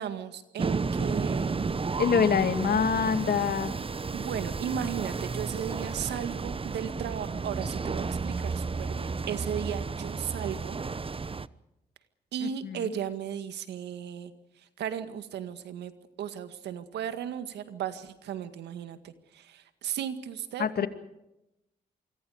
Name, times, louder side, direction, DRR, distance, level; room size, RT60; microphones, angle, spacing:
voice 1, 0.0-1.8 4.1-10.8 12.3-14.3 14.8-15.9 16.2-20.9, right 9 dB, 85° right, 10 dB, 1.9 m, -35 dB
sound 1, 0.6-11.5, right 4 dB, 30° right, 1.0 m, -32 dB
voice 2, 2.0-3.7 12.4-12.9 20.6-20.9, left 7 dB, 65° left, 9 dB, 2.4 m, -25 dB
27.0 x 24.5 x 5.1 m, 0.90 s
supercardioid pair, 50°, 17 cm